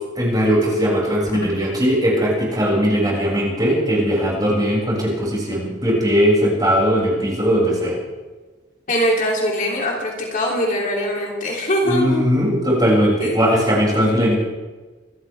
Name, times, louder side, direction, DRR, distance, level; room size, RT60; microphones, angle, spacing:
voice 1, 0.2-8.0 11.9-14.3, equal, 20° right, -4 dB, 6.8 m, -19 dB
voice 2, 8.9-12.2 13.2-13.4, equal, 45° left, -2 dB, 3.3 m, -22 dB
26.0 x 14.0 x 3.6 m, 1.3 s
head